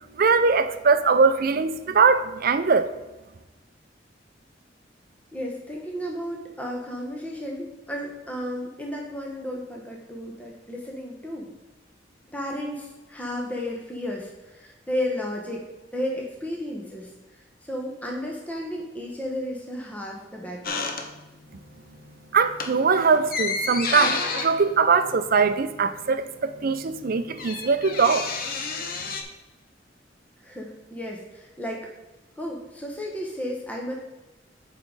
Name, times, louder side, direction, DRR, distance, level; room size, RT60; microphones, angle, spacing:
voice 1, 0.2-2.9 22.3-28.3, right 5 dB, 50° right, 11 dB, 0.5 m, -21 dB
voice 2, 5.3-11.5 12.3-15.6 15.9-17.1 17.6-20.8 30.4-31.9 32.4-33.9, left 1 dB, 10° left, -1 dB, 0.9 m, -33 dB
sound 1, 20.6-21.6 21.9-22.1 22.5-25.9 26.2-26.3 26.5-29.2, left 4 dB, 55° left, 0.8 m, -31 dB
7.6 x 5.2 x 4.7 m, 1.1 s
head